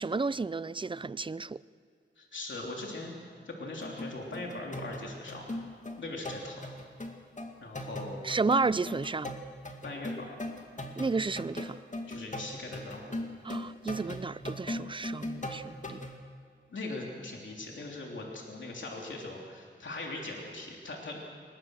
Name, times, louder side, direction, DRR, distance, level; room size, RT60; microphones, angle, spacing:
voice 1, 0.0-1.6 8.2-9.3 11.0-11.8 13.4-16.0, right 4 dB, 25° right, 0.5 m, -32 dB
voice 2, 2.2-3.1 3.4-5.4 6.0-6.6 7.6-8.3 9.8-10.4 12.1-13.1 16.7-21.2, left 2 dB, 80° left, 3.2 m, -40 dB
sound 1, 3.8-16.2, left 1 dB, 40° left, 2.3 m, -39 dB
23.0 x 21.0 x 6.3 m
wide cardioid pair, 60°, 19 cm